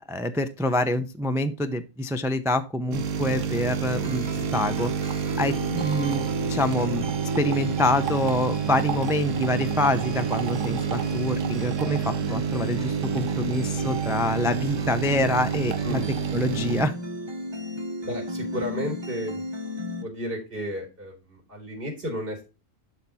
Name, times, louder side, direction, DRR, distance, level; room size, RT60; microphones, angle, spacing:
voice 1, 0.1-4.9 5.4-16.0 16.3-16.9, left 1 dB, 5° right, 8 dB, 0.3 m, -26 dB
sound 1, 2.9-16.8, right 7 dB, 70° right, 1.3 m, -28 dB
sound 2, 4.0-20.0, left 1 dB, 25° right, 0.8 m, -35 dB
voice 2, 18.0-19.4 20.0-22.4, equal, 40° right, 0 dB, 4.3 m, -33 dB
11.5 x 4.0 x 4.2 m, 0.30 s
omnidirectional pair, 1.4 m